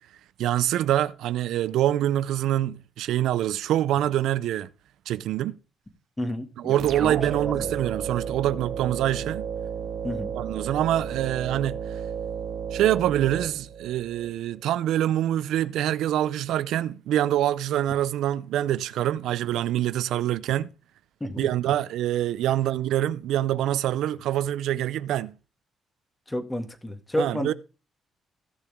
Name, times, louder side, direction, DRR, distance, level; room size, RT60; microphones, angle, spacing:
voice 1, 0.4-4.7 5.1-5.6 6.6-9.5 10.3-12.0 12.7-20.7 21.4-25.4 27.2-27.5, right 12 dB, 85° right, 0.5 m, -25 dB
voice 2, 6.2-7.1 7.4-7.7 10.0-10.3 21.2-21.5 26.3-27.5, left 1 dB, 15° left, 2.2 m, -31 dB
sound 1, 6.8-14.3, right 7 dB, 65° right, 1.8 m, -33 dB
16.0 x 6.8 x 3.6 m
cardioid pair, 90°, 0 cm